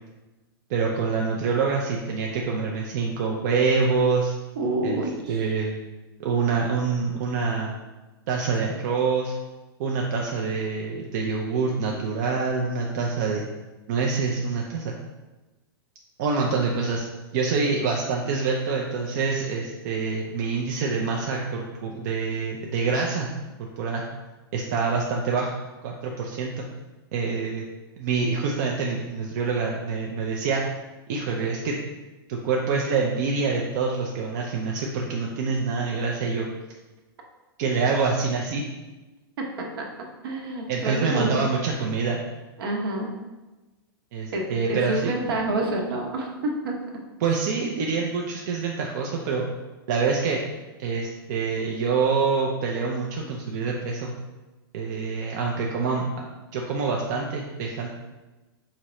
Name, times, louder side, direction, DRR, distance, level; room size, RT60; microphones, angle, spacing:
voice 1, 0.7-4.3 4.8-5.0 5.3-5.8 6.2-7.7 8.3-9.3 9.8-13.5 13.9-14.9 16.2-17.0 17.3-23.3 23.6-24.1 24.5-25.5 25.8-26.6 27.1-27.7 28.0-30.6 31.1-31.8 32.3-36.5 37.6-38.6 40.7-42.2 44.1-45.1 47.2-49.5 49.9-50.4 50.8-54.1 54.7-56.1 56.5-57.9, right 4 dB, 45° right, -1 dB, 0.5 m, -26 dB
voice 2, 4.6-5.5 39.8-39.9 40.2-41.5 42.6-43.1 44.3-46.7, right 2 dB, 70° right, 1 dB, 1.0 m, -28 dB
4.9 x 2.8 x 3.1 m, 1.1 s
hypercardioid pair, 150°, 13 cm